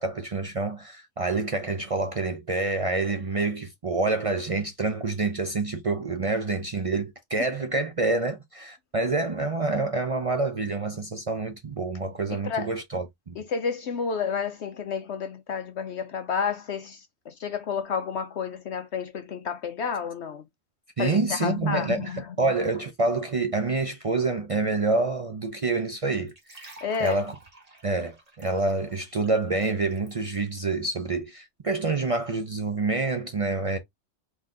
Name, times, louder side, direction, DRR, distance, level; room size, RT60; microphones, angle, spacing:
voice 1, 0.0-13.4 21.0-22.1 22.4-27.3 27.8-33.8, right 3 dB, 55° right, 0.4 m, -27 dB
voice 2, 12.3-12.7 13.4-20.4 21.0-22.3 26.8-27.2, left 6 dB, 60° left, 0.8 m, -30 dB
sound 1, 26.3-30.1, right 2 dB, 30° right, 1.7 m, -48 dB
4.0 x 3.1 x 3.7 m
omnidirectional pair, 1.4 m